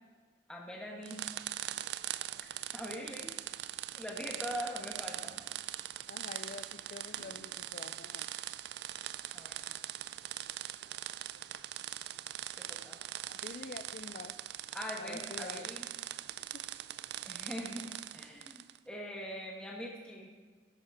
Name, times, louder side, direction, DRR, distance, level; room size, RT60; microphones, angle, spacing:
voice 1, 0.5-1.3 2.7-3.3 4.0-5.3 9.3-9.7 12.7-13.0 14.7-15.9 17.2-20.3, equal, 5° left, -2 dB, 1.2 m, -42 dB
sound 1, 1.0-18.8, right 13 dB, 60° right, 0.3 m, -42 dB
voice 2, 6.1-8.3 13.3-14.4 15.0-15.7 16.5-16.6, left 4 dB, 45° left, 7 dB, 0.4 m, -47 dB
12.0 x 8.9 x 3.6 m, 1.5 s
head